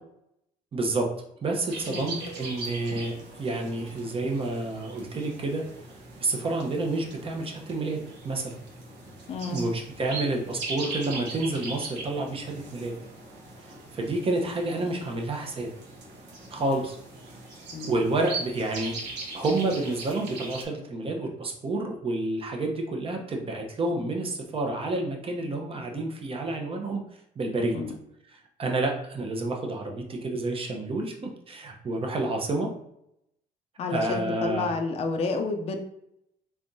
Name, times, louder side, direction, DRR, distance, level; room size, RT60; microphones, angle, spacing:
voice 1, 0.7-1.1 1.4-5.6 6.2-8.0 8.2-8.6 9.5-12.9 13.9-15.7 16.5-17.0 17.8-18.9 19.3-27.0 27.4-27.8 28.3-32.7 33.9-34.7, right 2 dB, 35° right, 2 dB, 0.8 m, -29 dB
sound 1, 1.7-20.6, right 3 dB, 80° right, 1.2 m, -40 dB
voice 2, 9.3-9.7 17.7-17.9 27.7-27.9 33.8-35.8, left 3 dB, 35° left, 4 dB, 0.5 m, -30 dB
3.5 x 3.4 x 2.7 m, 0.77 s
cardioid pair, 110°, 17 cm